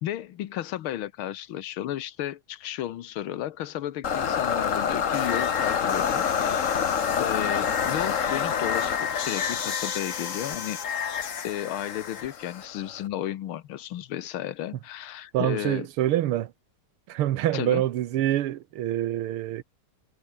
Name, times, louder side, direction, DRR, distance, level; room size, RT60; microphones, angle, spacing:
voice 1, 0.0-6.8 7.2-10.8 11.4-15.9 17.5-17.8, left 12 dB, 75° left, 1.8 m, -33 dB
sound 1, 4.0-13.1, left 7 dB, 45° left, 1.3 m, -27 dB
voice 2, 15.3-16.5 17.1-19.6, right 13 dB, 80° right, 1.8 m, -26 dB
omnidirectional pair, 2.4 m